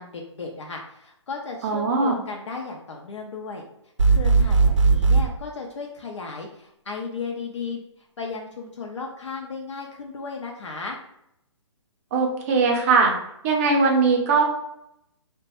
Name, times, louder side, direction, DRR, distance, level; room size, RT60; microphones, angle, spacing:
voice 1, 0.0-3.7 4.1-11.0, left 4 dB, 70° left, 0 dB, 0.5 m, -35 dB
voice 2, 1.6-2.2 12.1-13.1 13.4-14.4, right 4 dB, 30° right, 1 dB, 0.5 m, -20 dB
sound 1, 4.0-5.3, right 4 dB, 75° right, 0.5 m, -17 dB
2.9 x 2.1 x 2.8 m, 0.78 s
figure-of-eight pair, 135°, 16 cm